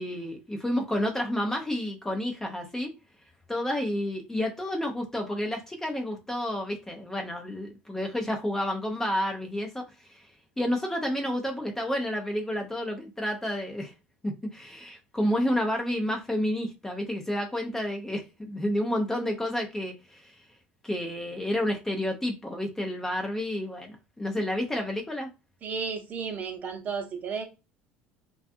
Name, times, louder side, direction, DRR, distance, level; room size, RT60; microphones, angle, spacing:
voice 1, 0.0-2.9 3.5-10.2 10.6-13.9 14.2-20.3 20.8-25.3, left 1 dB, 10° left, 0.5 m, -30 dB
voice 2, 25.6-27.4, right 5 dB, 40° right, 0.8 m, -33 dB
2.4 x 2.3 x 2.6 m
supercardioid pair, 100°, 4 cm